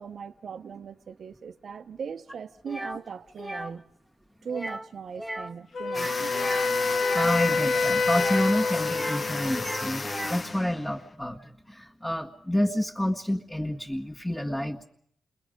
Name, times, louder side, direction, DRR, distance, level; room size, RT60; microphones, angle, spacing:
voice 1, 0.0-3.9 4.4-6.6, right 6 dB, 70° right, 0.9 m, -39 dB
sound 1, 2.7-3.0 3.4-3.7 4.5-4.9 5.1-5.5 5.8-7.3 8.1-9.3 9.5-10.5, right 1 dB, 5° right, 0.8 m, -37 dB
Wind instrument woodwind instrument, 5.7-9.8, left 4 dB, 65° left, 1.3 m, -27 dB
sound 2, 5.9-11.1, left 3 dB, 45° left, 1.1 m, -34 dB
voice 2, 7.1-14.8, left 1 dB, 15° left, 1.6 m, -29 dB
28.5 x 22.0 x 5.2 m
cardioid pair, 60°, 0 cm